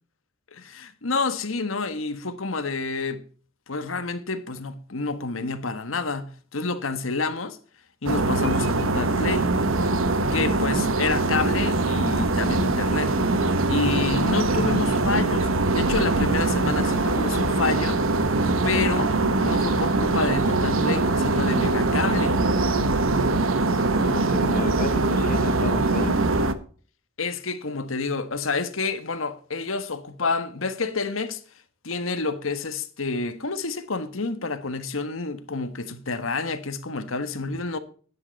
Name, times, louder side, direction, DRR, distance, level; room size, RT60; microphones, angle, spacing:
voice 1, 0.5-3.2 3.7-7.6 8.0-9.5 10.3-13.1 13.7-18.0 18.6-19.1 19.4-22.4 27.2-31.4 31.8-37.8, left 4 dB, 75° left, 1.4 m, -28 dB
sound 1, 8.1-26.5, right 2 dB, 80° right, 1.1 m, -22 dB
voice 2, 24.0-26.2, left 2 dB, 45° left, 1.1 m, -32 dB
10.0 x 9.7 x 4.1 m
head